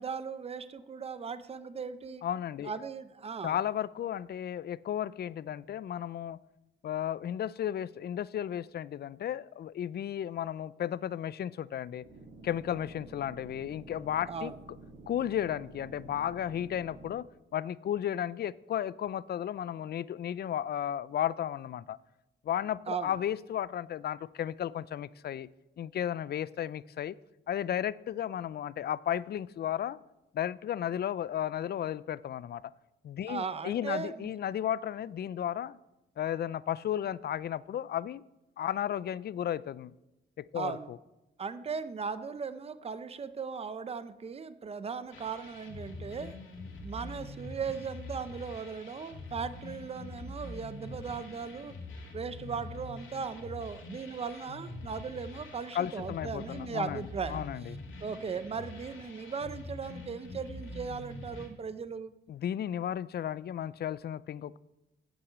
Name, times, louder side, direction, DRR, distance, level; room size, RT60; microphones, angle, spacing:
voice 1, 0.0-2.2 2.6-3.6 14.3-14.5 22.9-23.1 33.3-34.3 40.5-40.9 41.4-46.3 46.8-51.7 52.1-57.4 58.0-62.1, right 5 dB, 30° right, 13 dB, 0.6 m, -38 dB
voice 2, 2.2-2.7 3.4-6.4 6.8-12.0 12.4-14.5 15.1-17.3 17.5-22.0 22.4-25.5 25.8-27.2 27.5-30.0 30.3-32.6 33.0-35.8 36.2-38.2 38.6-39.9 40.4-41.0 55.7-57.7 62.3-64.6, left 10 dB, 50° left, 19 dB, 0.4 m, -34 dB
sound 1, 12.0-17.1, right 2 dB, 60° right, 2.9 m, -50 dB
sound 2, 45.1-61.5, left 2 dB, 75° left, 2.4 m, -45 dB
8.9 x 8.0 x 8.5 m, 0.95 s
wide cardioid pair, 145°, 21 cm